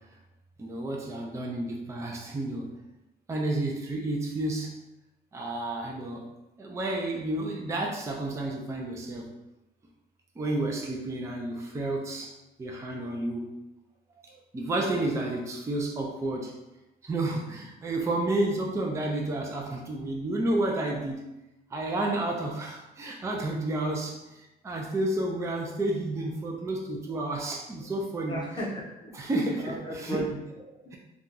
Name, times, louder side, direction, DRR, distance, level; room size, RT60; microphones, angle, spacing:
voice 1, 0.6-2.7 3.3-4.7 5.3-6.3 6.6-9.3 10.4-12.3 12.6-13.5 14.5-16.5 17.0-21.2 21.7-28.4 29.1-30.2, right 2 dB, 15° right, 0 dB, 0.5 m, -31 dB
voice 2, 28.3-29.3 29.6-31.0, right 1 dB, 25° left, -5 dB, 0.8 m, -36 dB
2.7 x 2.3 x 3.7 m, 0.96 s
cardioid pair, 110°, 17 cm